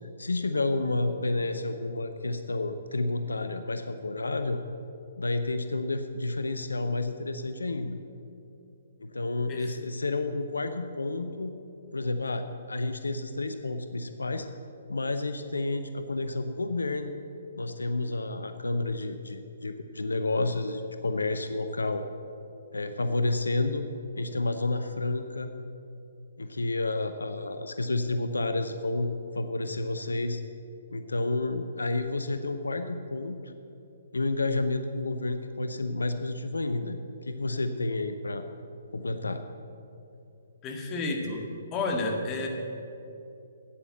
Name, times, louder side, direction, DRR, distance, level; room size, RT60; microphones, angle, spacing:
voice 1, 0.2-4.6 5.2-8.0 9.0-11.5 11.9-14.5 14.9-17.1 17.6-22.0 22.7-23.9 24.2-25.5 26.4-29.1 29.3-30.4 30.9-33.5 34.1-38.5 38.9-39.4, left 2 dB, 85° left, 9 dB, 0.6 m, -30 dB
voice 2, 40.6-41.4 41.7-42.5, left 3 dB, 25° left, 2 dB, 1.7 m, -30 dB
9.0 x 8.5 x 7.8 m, 2.8 s
figure-of-eight pair, 135°, 0 cm